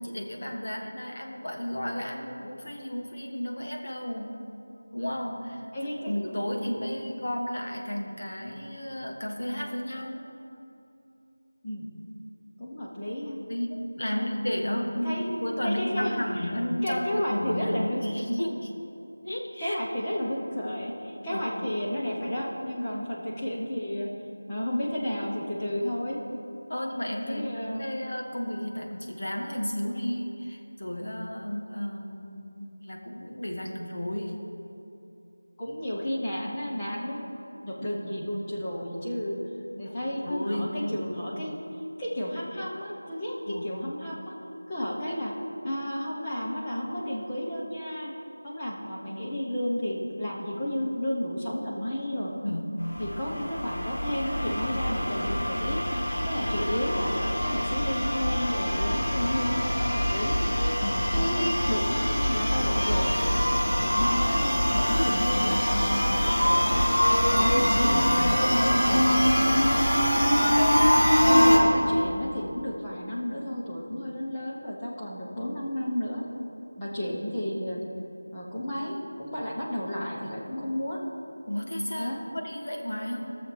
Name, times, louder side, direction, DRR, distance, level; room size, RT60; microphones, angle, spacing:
voice 1, 0.0-4.4 4.9-5.7 6.0-10.2 13.5-18.7 19.2-19.8 21.3-21.4 26.7-27.4 27.8-34.4 39.8-39.9 40.2-40.8 43.5-43.7 45.1-45.2 52.4-52.9 60.8-61.2 67.2-67.5 67.8-69.2 81.4-83.3, equal, 50° left, 0 dB, 1.5 m, -33 dB
voice 2, 5.7-6.1 11.6-11.9 12.6-13.4 14.1-14.3 15.0-15.2 15.6-16.5 16.8-18.0 19.6-24.1 24.5-26.2 27.3-27.9 35.6-37.2 37.6-39.4 39.8-41.5 42.0-44.3 44.7-45.3 45.6-48.1 48.4-52.3 53.0-55.8 56.2-60.4 61.1-63.2 63.8-66.7 67.3-68.8 71.2-76.2 76.8-77.8 78.3-81.0 82.0-82.2, equal, 10° left, -7 dB, 0.8 m, -32 dB
sound 1, 52.9-71.6, equal, 85° left, 2.4 m, -24 dB
19.5 x 6.8 x 4.3 m, 2.8 s
figure-of-eight pair, 180°, 0 cm